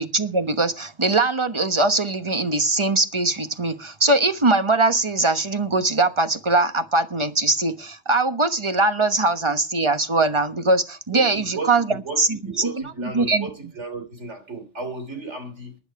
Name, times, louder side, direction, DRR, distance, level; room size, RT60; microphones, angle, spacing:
voice 1, 0.0-12.7 13.0-13.5, right 2 dB, 25° right, 1.1 m, -21 dB
voice 2, 11.1-15.8, right 3 dB, 75° right, 3.6 m, -34 dB
15.0 x 11.0 x 4.8 m
omnidirectional pair, 1.2 m